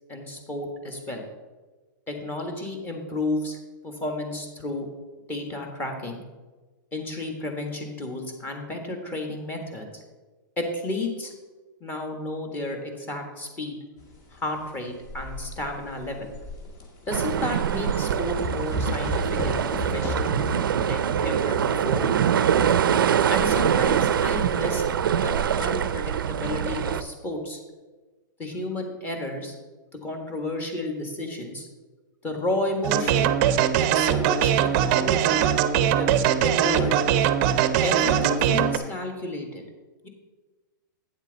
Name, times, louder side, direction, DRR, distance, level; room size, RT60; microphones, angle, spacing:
voice 1, 0.1-1.2 2.1-3.6 3.8-4.8 5.3-6.2 6.9-9.9 10.6-11.3 11.8-13.8 14.3-16.3 17.1-20.5 20.9-22.1 23.3-24.8 25.2-25.3 25.6-27.6 28.4-29.5 29.9-31.7 32.2-33.3 33.8-35.4 36.0-37.0 37.8-39.6 40.0-40.1, left 2 dB, 15° left, 3 dB, 1.5 m, -32 dB
sound 1, 14.0-26.0, left 3 dB, 30° left, 1.9 m, -37 dB
sound 2, 17.1-27.0, right 8 dB, 85° right, 0.5 m, -24 dB
sound 3, 32.8-38.8, right 9 dB, 40° right, 0.6 m, -21 dB
8.9 x 7.3 x 4.0 m, 1.2 s
hypercardioid pair, 145°, 11 cm